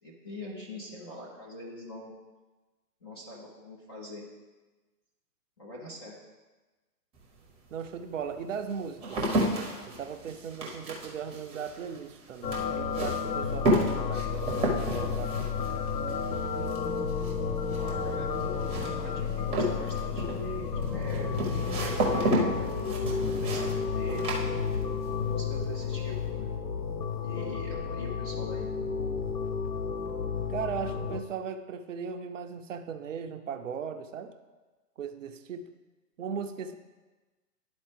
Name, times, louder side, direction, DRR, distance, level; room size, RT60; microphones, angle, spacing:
voice 1, 0.0-2.1 3.0-4.2 5.6-6.1 17.7-22.8 23.3-24.6 25.2-26.5 27.2-28.7, left 1 dB, 15° left, -5 dB, 0.4 m, -43 dB
sound 1, 7.2-7.3 8.0-25.1 25.4-26.0, right 1 dB, 10° right, 0.8 m, -32 dB
voice 2, 7.7-9.3 9.9-15.4 30.5-34.3 35.0-35.7 36.2-36.8, right 7 dB, 50° right, 8 dB, 0.6 m, -37 dB
sound 2, 12.4-31.2, left 5 dB, 85° left, 0.8 m, -32 dB
sound 3, 18.7-20.3 20.8-22.9 23.2-24.6, left 1 dB, 60° left, 1.3 m, -44 dB
11.5 x 4.2 x 3.3 m, 1.2 s
figure-of-eight pair, 120°, 49 cm